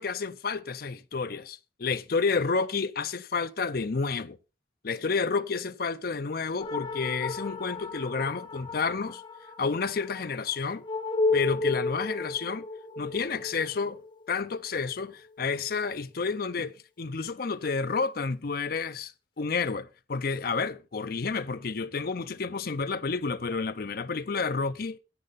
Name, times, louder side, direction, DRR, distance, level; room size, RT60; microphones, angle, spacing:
voice 1, 0.0-4.4 4.8-9.2 9.6-10.8 11.3-12.6 13.0-14.0 14.3-25.0, left 4 dB, 55° left, 0.6 m, -30 dB
sound 1, 6.6-15.4, left 3 dB, 25° left, 1.5 m, -34 dB
10.0 x 8.7 x 4.0 m
head